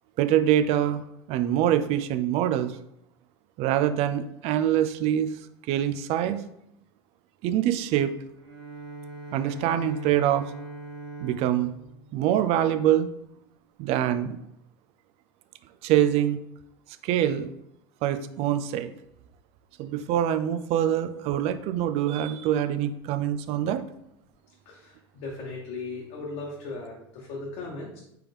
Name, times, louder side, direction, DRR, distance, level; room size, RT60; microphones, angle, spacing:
voice 1, 0.2-1.0 1.3-2.7 3.6-5.3 5.7-6.4 7.4-8.1 9.3-10.5 11.2-11.7 12.1-13.1 13.8-14.4 15.8-16.4 17.0-17.5 18.0-18.9 19.8-23.8, right 11 dB, 50° right, 10 dB, 0.4 m, -24 dB
Bowed string instrument, 8.3-13.3, right 2 dB, 80° right, 1.5 m, -42 dB
voice 2, 24.6-28.0, left 3 dB, 60° left, -3 dB, 1.1 m, -37 dB
4.5 x 3.4 x 3.5 m, 0.78 s
hypercardioid pair, 95°, 13 cm